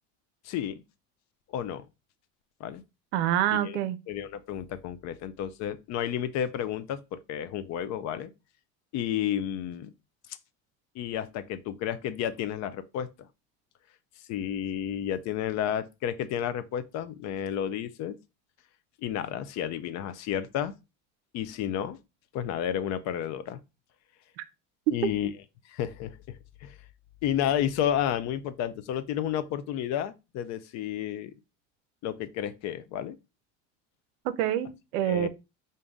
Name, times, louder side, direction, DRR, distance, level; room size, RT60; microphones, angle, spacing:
voice 1, 0.4-0.8 1.5-1.9 2.6-2.8 3.5-3.8 4.1-8.3 8.9-9.9 11.0-13.1 14.3-18.2 19.0-20.7 21.3-22.0 22.3-23.6 24.9-25.3 25.7-26.4 26.6-26.7 27.2-31.3 32.0-33.2 35.0-35.3, left 10 dB, 50° left, 0.5 m, -31 dB
voice 2, 3.1-4.0 24.4-24.5 25.0-25.1 34.2-35.3, right 11 dB, 75° right, 0.5 m, -27 dB
3.8 x 2.6 x 3.5 m
supercardioid pair, 100°, 35 cm